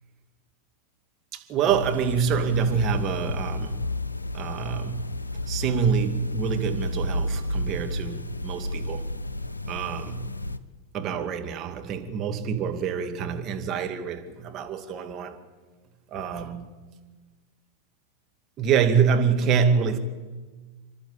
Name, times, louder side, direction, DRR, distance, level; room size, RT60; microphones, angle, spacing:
voice 1, 1.3-4.0 4.3-5.1 5.5-9.0 9.7-10.3 10.9-15.4 16.1-16.7 18.6-20.0, right 6 dB, 30° right, 2.4 m, -26 dB
sound 1, 1.7-10.6, left 1 dB, 80° left, 0.8 m, -31 dB
29.5 x 12.0 x 8.6 m
figure-of-eight pair, 90°, 0 cm